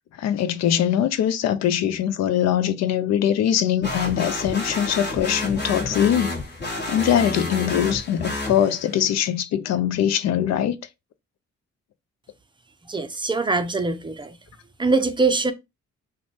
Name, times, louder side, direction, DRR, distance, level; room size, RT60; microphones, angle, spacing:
voice 1, 0.2-6.3 6.9-10.8, left 10 dB, 60° left, 0.5 m, -22 dB
sound 1, 3.8-9.0, left 2 dB, 35° left, 1.1 m, -30 dB
voice 2, 12.9-14.4 14.8-15.5, right 3 dB, 15° right, 0.5 m, -23 dB
2.5 x 2.2 x 3.1 m
supercardioid pair, 65°, 30 cm